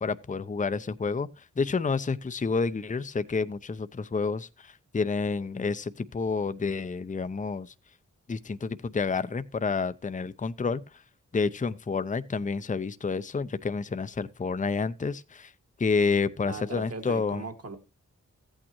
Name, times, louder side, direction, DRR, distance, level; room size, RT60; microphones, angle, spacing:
voice 1, 0.0-7.7 8.3-11.0 11.3-15.5 15.8-17.4, left 4 dB, 25° left, 0.6 m, -29 dB
voice 2, 16.5-17.8, right 3 dB, 50° right, 1.8 m, -38 dB
15.0 x 8.8 x 3.0 m
cardioid pair, 60°, 31 cm